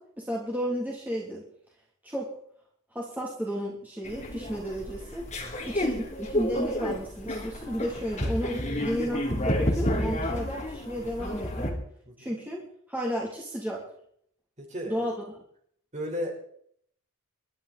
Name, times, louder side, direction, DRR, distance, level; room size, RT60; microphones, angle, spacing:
voice 1, 0.0-1.4 2.0-2.3 2.9-5.2 5.6-11.8 12.2-12.6 12.9-13.8 14.9-15.2, equal, 10° right, -4 dB, 3.2 m, -33 dB
sound 1, 4.0-11.7, left 1 dB, 30° left, 3.5 m, -30 dB
voice 2, 5.3-5.6 10.1-10.2 12.1-12.4 14.6-15.1 15.9-16.3, equal, 30° right, 1 dB, 4.9 m, -36 dB
22.5 x 12.5 x 4.3 m, 0.66 s
head